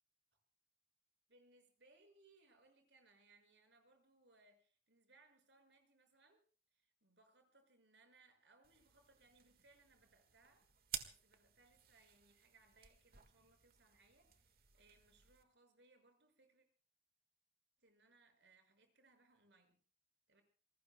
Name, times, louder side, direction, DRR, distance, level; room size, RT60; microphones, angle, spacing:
voice 1, 1.3-6.4 6.7-10.7 11.0-16.7 17.8-19.8 20.3-20.4, right 3 dB, 80° right, 5 dB, 6.0 m, -70 dB
sound 1, 8.6-15.4, right 10 dB, 55° right, 1.7 m, -54 dB
27.5 x 21.0 x 2.3 m, 0.40 s
head